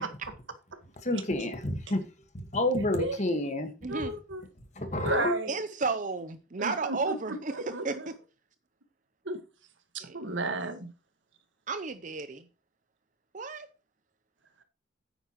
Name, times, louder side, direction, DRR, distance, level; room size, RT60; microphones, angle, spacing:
voice 1, 1.0-2.0 2.3-3.7 4.8-5.3, left 1 dB, 35° left, 1.6 m, -29 dB
voice 2, 3.9-4.4 5.0-5.5 6.6-8.1 9.2-9.4 9.9-10.9, right 2 dB, 75° right, 1.6 m, -33 dB
voice 3, 5.5-8.1 10.0-10.2 11.7-12.4 13.3-13.7, right 4 dB, 40° right, 0.6 m, -33 dB
9.3 x 9.1 x 3.1 m
head